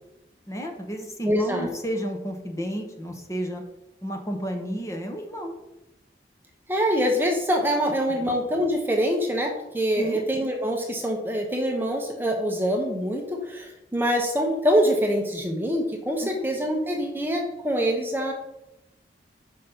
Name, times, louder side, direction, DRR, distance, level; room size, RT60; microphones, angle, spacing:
voice 1, 0.5-3.6 4.0-5.6 8.1-8.4 9.9-10.2 16.2-16.5, equal, 15° left, 3 dB, 0.9 m, -32 dB
voice 2, 1.3-1.7 6.7-18.3, equal, 10° right, 2 dB, 0.8 m, -25 dB
5.4 x 5.1 x 5.9 m, 0.92 s
head